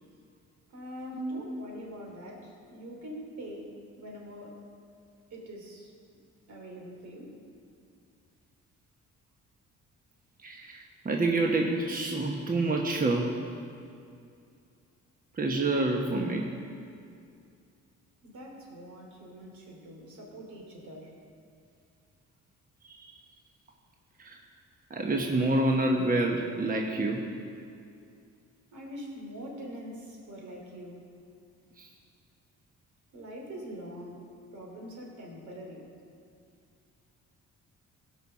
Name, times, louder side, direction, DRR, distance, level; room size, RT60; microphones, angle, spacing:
voice 1, 0.7-4.7 5.3-5.9 6.5-7.4 18.2-21.2 28.7-31.1 33.1-35.9, equal, 75° right, -1 dB, 2.9 m, -44 dB
voice 2, 10.4-13.4 15.4-16.4 22.8-23.1 24.2-24.4 24.9-27.2 31.8-31.9, right 2 dB, 30° right, 1 dB, 1.1 m, -28 dB
16.5 x 5.6 x 6.2 m, 2.4 s
cardioid pair, 90°, 30 cm